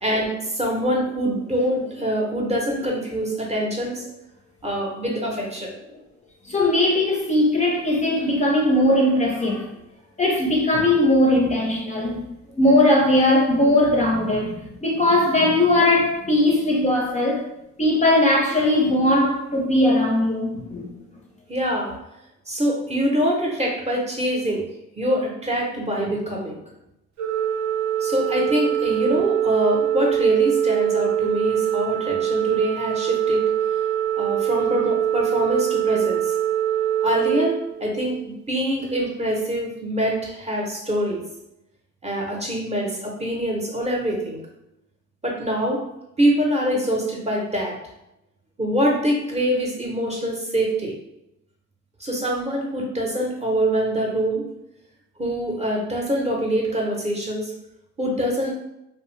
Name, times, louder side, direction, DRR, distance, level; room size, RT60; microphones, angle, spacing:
voice 1, 0.0-4.1 4.6-5.7 21.5-21.9 22.5-24.6 25.0-26.6 28.0-33.4 34.2-36.3 37.0-41.2 42.0-44.4 45.2-45.8 46.2-47.8 48.6-50.9 52.0-54.5 55.2-57.5 58.0-58.5, equal, 20° right, 0.7 m, -24 dB
voice 2, 6.4-9.7 10.2-12.2 12.6-17.4 17.8-20.9, left 1 dB, 25° left, 0.5 m, -19 dB
Organ, 27.2-38.3, right 10 dB, 65° right, 0.5 m, -23 dB
2.6 x 2.0 x 3.1 m
cardioid pair, 90°, 30 cm